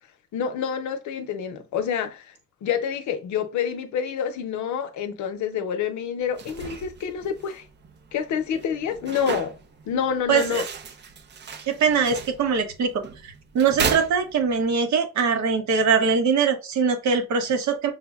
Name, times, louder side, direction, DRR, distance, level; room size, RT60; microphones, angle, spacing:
voice 1, 0.3-2.3 2.6-7.6 8.1-9.5 9.9-10.6, left 7 dB, 70° left, 0.6 m, -27 dB
sound 1, 6.2-14.8, right 6 dB, 35° right, 0.4 m, -35 dB
voice 2, 10.3-10.6 11.7-17.9, right 5 dB, 70° right, 0.8 m, -22 dB
5.6 x 2.0 x 2.2 m
cardioid pair, 90°, 30 cm